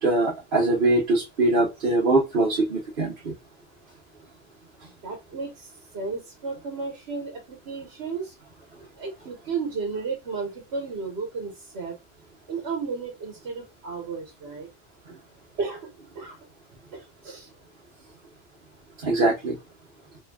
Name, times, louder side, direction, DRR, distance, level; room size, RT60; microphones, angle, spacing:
voice 1, 0.0-3.3 19.0-19.6, right 2 dB, 60° right, 1.2 m, -22 dB
voice 2, 5.0-8.3 9.0-11.9 12.5-14.7 15.6-16.4 16.9-17.5, right 4 dB, 85° right, 1.3 m, -33 dB
4.4 x 3.3 x 2.7 m
omnidirectional pair, 1.0 m